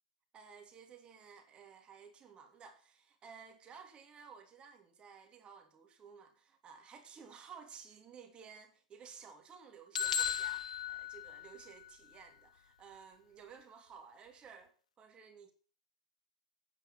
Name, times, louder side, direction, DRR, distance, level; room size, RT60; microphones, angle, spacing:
voice 1, 0.3-15.5, right 6 dB, 30° right, 2.9 m, -55 dB
sound 1, 9.9-11.9, left 8 dB, 85° left, 0.8 m, -36 dB
9.2 x 8.8 x 8.9 m
hypercardioid pair, 95°, 4 cm